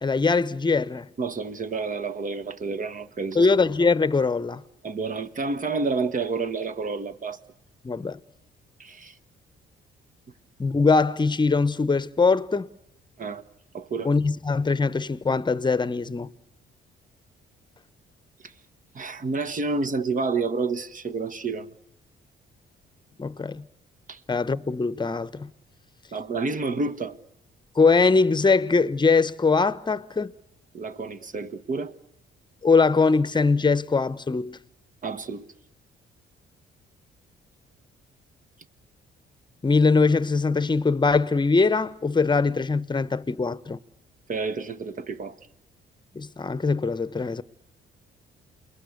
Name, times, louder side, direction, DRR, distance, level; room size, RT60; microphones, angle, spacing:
voice 1, 0.0-1.1 3.3-4.6 7.8-8.2 10.6-12.7 14.0-16.3 23.2-23.7 24.3-25.5 27.8-30.3 32.6-34.6 39.6-43.8 46.1-47.4, left 4 dB, 20° left, 0.9 m, -22 dB
voice 2, 1.2-3.5 4.8-7.4 8.8-9.1 13.2-13.4 13.7-14.1 18.4-18.5 18.9-21.7 24.1-24.2 26.1-27.2 30.7-31.9 35.0-35.5 44.3-45.4, right 4 dB, 40° right, 1.4 m, -29 dB
29.0 x 21.5 x 8.3 m
cardioid pair, 90°, 20 cm